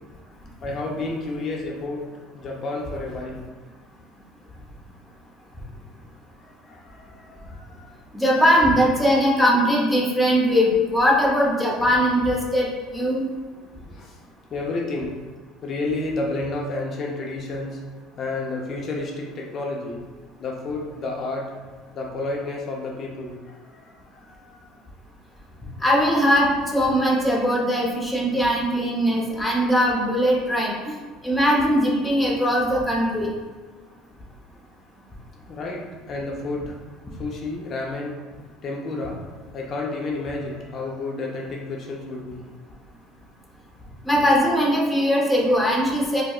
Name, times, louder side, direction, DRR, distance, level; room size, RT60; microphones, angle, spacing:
voice 1, 0.6-3.4 6.4-7.9 13.6-14.2 14.5-15.2 15.6-17.8 18.1-20.0 20.4-21.5 21.9-24.7 35.5-36.8 37.2-38.2 38.6-39.2 39.5-42.4, left 2 dB, 40° left, -1 dB, 0.6 m, -31 dB
voice 2, 8.1-13.2 25.8-30.9 31.2-33.3 44.0-46.2, equal, 10° left, -3 dB, 0.7 m, -20 dB
4.5 x 2.2 x 2.4 m, 1.4 s
supercardioid pair, 115°, 0 cm